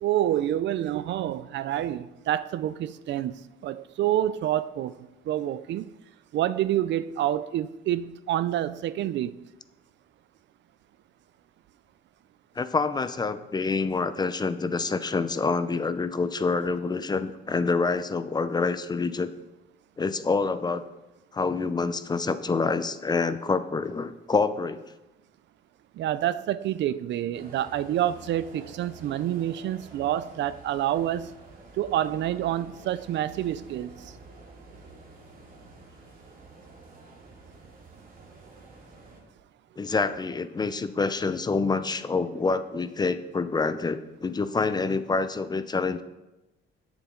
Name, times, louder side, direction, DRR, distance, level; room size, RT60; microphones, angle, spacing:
voice 1, 0.0-3.4 3.6-4.9 5.3-5.9 6.3-9.4 26.0-31.4 31.8-34.1, right 12 dB, 65° right, 16 dB, 0.5 m, -28 dB
voice 2, 12.6-19.3 20.0-20.8 21.3-24.8 39.8-46.0, left 4 dB, 20° left, 12 dB, 0.6 m, -27 dB
sound 1, 27.3-39.2, right 3 dB, 45° right, 2.8 m, -49 dB
17.5 x 7.2 x 3.8 m, 1.0 s
cardioid pair, 130°, 20 cm